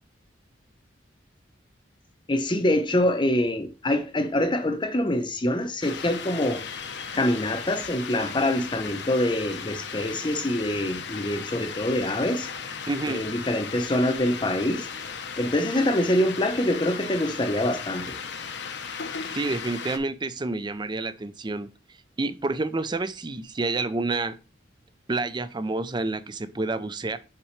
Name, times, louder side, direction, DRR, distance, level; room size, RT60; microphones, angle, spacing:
voice 1, 2.3-6.6 7.1-12.5 13.1-14.9 15.4-18.2, left 1 dB, 25° left, 0.7 m, -25 dB
sound 1, 5.8-20.0, left 6 dB, 65° left, 0.8 m, -36 dB
voice 2, 12.9-13.2 19.3-21.7 22.2-24.3 25.1-27.2, right 3 dB, 25° right, 0.5 m, -29 dB
5.9 x 5.3 x 3.2 m
head